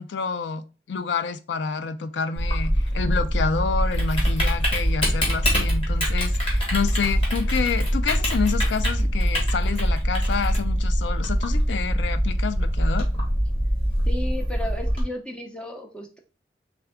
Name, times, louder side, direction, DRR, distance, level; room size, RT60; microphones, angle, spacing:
voice 1, 0.0-13.1, left 5 dB, 90° left, 0.4 m, -28 dB
Typing, 2.4-15.0, equal, 30° left, 1.4 m, -23 dB
voice 2, 14.1-16.2, left 1 dB, 5° left, 0.6 m, -34 dB
3.5 x 3.4 x 3.5 m
head